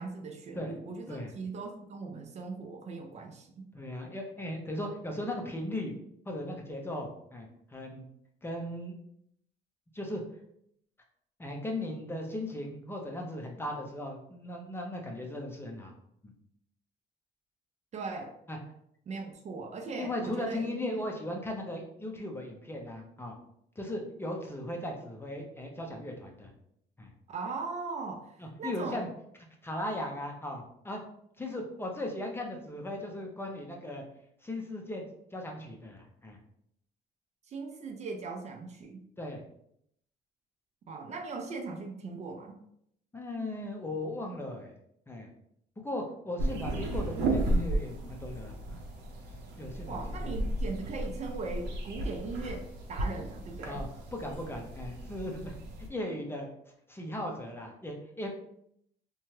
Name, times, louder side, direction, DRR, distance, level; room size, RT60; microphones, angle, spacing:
voice 1, 0.0-3.6 17.9-18.3 19.1-20.8 27.3-29.0 37.5-39.0 40.9-42.6 49.9-53.8, right 4 dB, 40° right, 4 dB, 0.4 m, -39 dB
voice 2, 3.7-5.9 6.3-8.0 8.4-9.0 9.9-10.2 11.4-15.9 16.2-16.3 18.5-18.6 19.9-23.4 23.8-26.5 27.0-27.1 28.4-29.1 29.6-31.0 31.4-34.0 34.4-35.0 35.3-36.4 39.2-39.4 43.1-44.7 45.1-45.3 45.8-48.8 49.6-50.4 53.6-56.5 56.9-58.3, left 1 dB, 15° left, 1 dB, 0.5 m, -37 dB
sound 1, 46.4-55.9, right 1 dB, 80° right, 0.7 m, -34 dB
2.7 x 2.2 x 3.1 m, 0.73 s
cardioid pair, 110°, 17 cm